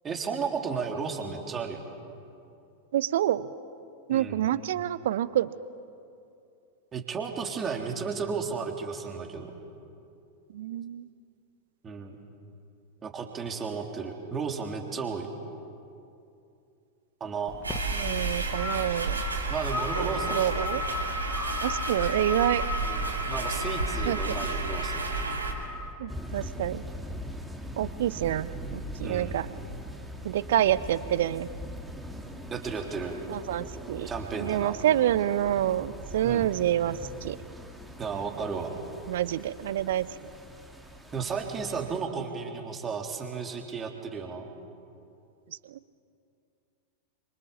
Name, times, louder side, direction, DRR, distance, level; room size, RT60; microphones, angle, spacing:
voice 1, 0.0-1.8 4.1-4.4 6.9-9.5 11.8-12.2 13.0-15.3 17.2-17.6 19.5-20.6 22.8-25.3 29.0-29.4 32.5-33.2 34.1-34.8 36.2-36.5 38.0-38.7 41.1-44.5, right 5 dB, 20° right, 2 dB, 3.7 m, -34 dB
voice 2, 2.9-3.5 4.1-5.5 10.5-11.1 17.9-19.2 20.3-20.8 21.6-22.6 24.0-24.4 26.0-26.8 27.8-29.5 30.2-31.5 33.3-37.4 39.1-40.1 45.7-45.8, right 12 dB, 60° right, 17 dB, 0.9 m, -27 dB
sound 1, 17.5-25.9, left 3 dB, 15° left, 1.8 m, -37 dB
sound 2, 17.6-25.5, right 3 dB, 80° right, 3.9 m, -31 dB
sound 3, 26.1-42.0, equal, ahead, 2.8 m, -41 dB
28.0 x 26.0 x 7.3 m, 2.6 s
figure-of-eight pair, 90°, 0 cm